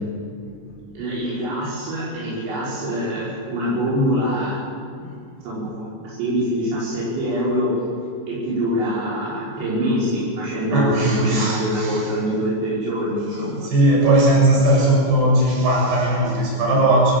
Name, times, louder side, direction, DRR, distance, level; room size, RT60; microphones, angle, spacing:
voice 1, 0.6-4.6 4.9-5.1 5.4-7.7 8.3-13.6, equal, 85° right, -8 dB, 7.7 m, -24 dB
voice 2, 10.7-12.0 13.7-17.1, right 1 dB, 65° right, -3 dB, 8.7 m, -18 dB
24.5 x 17.5 x 8.6 m, 2.2 s
omnidirectional pair, 5.0 m